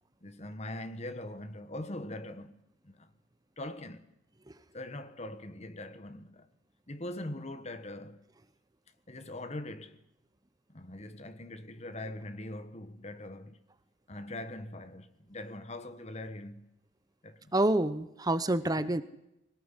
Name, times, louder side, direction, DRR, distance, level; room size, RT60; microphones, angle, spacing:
voice 1, 0.2-3.1 3.6-4.1 4.7-6.5 6.9-8.3 9.1-10.0 10.7-13.6 14.1-16.7 17.2-17.5 18.7-19.0, left 1 dB, 35° left, 1.4 m, -42 dB
voice 2, 17.5-19.0, right 1 dB, 20° right, 0.9 m, -27 dB
21.5 x 19.0 x 9.9 m
head